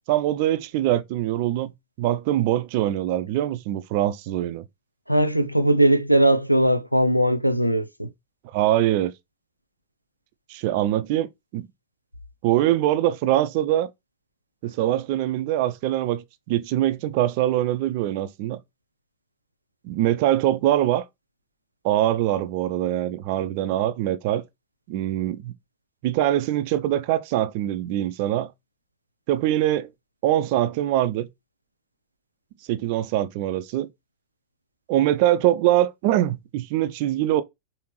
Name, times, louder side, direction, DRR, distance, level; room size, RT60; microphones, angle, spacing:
voice 1, 0.1-4.6 8.5-9.1 10.5-11.3 11.5-11.7 12.4-13.9 14.6-18.6 19.8-21.0 21.8-24.4 24.9-25.5 26.0-28.5 29.3-29.9 30.2-31.3 32.7-33.9 34.9-37.4, right 13 dB, 45° right, 0.5 m, -23 dB
voice 2, 5.1-8.1, right 1 dB, 90° left, 0.5 m, -19 dB
5.0 x 2.8 x 3.0 m
figure-of-eight pair, 90°, 0 cm